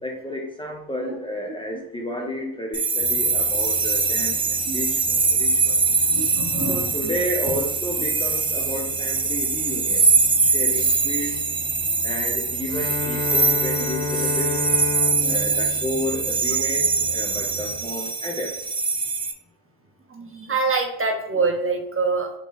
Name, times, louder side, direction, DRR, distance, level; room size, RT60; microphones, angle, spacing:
voice 1, 0.0-5.8 6.7-10.1 10.4-11.4 12.0-14.7 15.3-18.5, left 1 dB, 10° left, 0 dB, 0.7 m, -31 dB
Fairy sound, 2.7-19.3, right 4 dB, 15° right, 0.4 m, -23 dB
sound 1, 3.0-17.9, right 8 dB, 65° right, 1.0 m, -41 dB
voice 2, 6.0-7.1 13.4-13.5 14.9-15.5 20.1-22.3, right 4 dB, 30° right, 2 dB, 0.9 m, -26 dB
Bowed string instrument, 12.6-17.0, left 4 dB, 80° left, 0.7 m, -31 dB
3.7 x 3.0 x 4.0 m, 0.84 s
cardioid pair, 80°, 42 cm